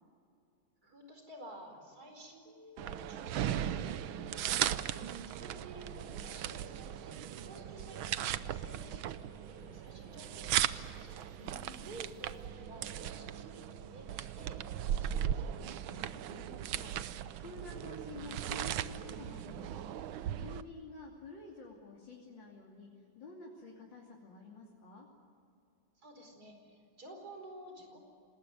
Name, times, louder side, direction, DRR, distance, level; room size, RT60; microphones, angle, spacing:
voice 1, 0.8-2.5 2.8-11.5 11.8-15.6 26.0-28.0, right 1 dB, 50° right, 4 dB, 5.2 m, -53 dB
sound 1, 2.5-12.5, equal, 15° right, 6.2 m, -59 dB
sound 2, 2.8-20.6, right 11 dB, 90° right, 1.6 m, -37 dB
voice 2, 11.4-12.0 15.8-19.9 20.3-25.1, left 3 dB, 70° left, -2 dB, 3.7 m, -50 dB
27.5 x 19.5 x 9.5 m, 2.6 s
omnidirectional pair, 2.2 m